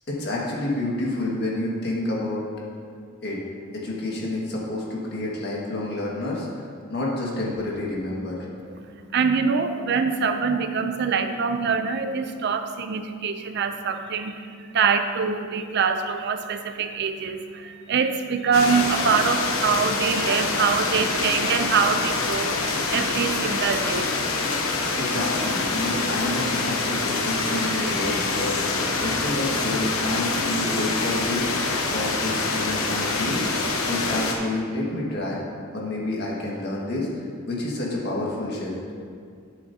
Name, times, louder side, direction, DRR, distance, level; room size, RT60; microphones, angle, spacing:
voice 1, 0.1-2.4 3.2-3.4 3.7-8.4 25.0-33.5 33.8-35.4 35.7-38.7, left 1 dB, 50° left, -4 dB, 1.8 m, -29 dB
voice 2, 8.7-24.1, right 5 dB, 50° right, 7 dB, 0.4 m, -24 dB
sound 1, 18.5-34.3, left 3 dB, 85° left, 1.0 m, -26 dB
11.5 x 7.3 x 2.8 m, 2.2 s
head